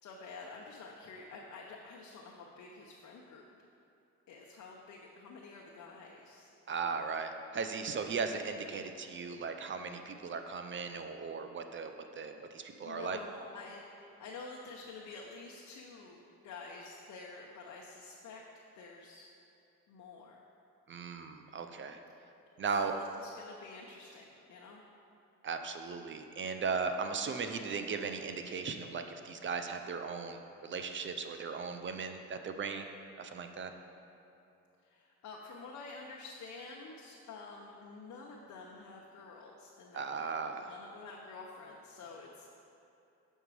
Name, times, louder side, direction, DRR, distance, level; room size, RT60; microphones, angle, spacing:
voice 1, 0.0-3.4 4.3-7.0 12.0-18.4 18.7-19.3 19.9-20.4 22.6-24.8 34.8-40.3 40.7-42.5, left 4 dB, 65° left, -2 dB, 0.8 m, -49 dB
voice 2, 6.7-13.2 20.9-22.0 22.6-23.0 25.4-32.9 33.2-33.7 39.9-40.7, right 5 dB, 40° right, 7 dB, 0.6 m, -37 dB
6.9 x 5.4 x 4.8 m, 2.8 s
cardioid pair, 90°, 30 cm